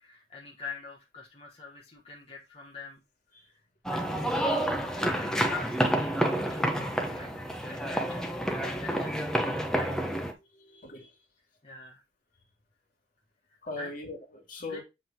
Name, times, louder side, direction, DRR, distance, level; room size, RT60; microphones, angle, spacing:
voice 1, 0.0-3.0 3.4-3.6 3.9-4.2 4.9-7.3 7.6-9.4 9.7-10.1 11.6-12.0 13.8-13.9 14.6-14.8, left 4 dB, 35° left, 1.3 m, -44 dB
sound 1, 3.9-10.3, equal, 5° left, 1.0 m, -29 dB
voice 2, 10.4-11.1 13.6-14.8, left 3 dB, 50° left, 2.2 m, -40 dB
7.8 x 3.7 x 4.4 m
head